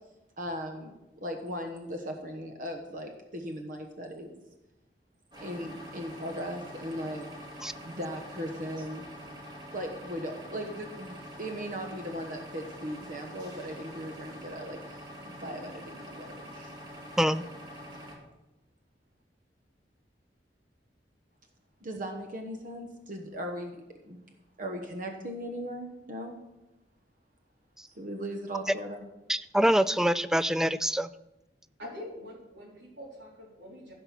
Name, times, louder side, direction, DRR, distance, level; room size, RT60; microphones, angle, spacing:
voice 1, 0.4-4.4 5.4-7.3 7.8-9.1 9.7-15.0 15.2-16.7 21.8-24.2 24.6-26.4 27.9-29.0, equal, 50° right, 4 dB, 1.2 m, -38 dB
sound 1, 5.3-18.2, equal, 25° right, 2.5 m, -45 dB
voice 2, 29.3-31.1, equal, 5° right, 15 dB, 0.3 m, -25 dB
voice 3, 31.8-33.9, left 1 dB, 90° right, -2 dB, 3.6 m, -44 dB
15.0 x 5.5 x 6.0 m, 0.95 s
head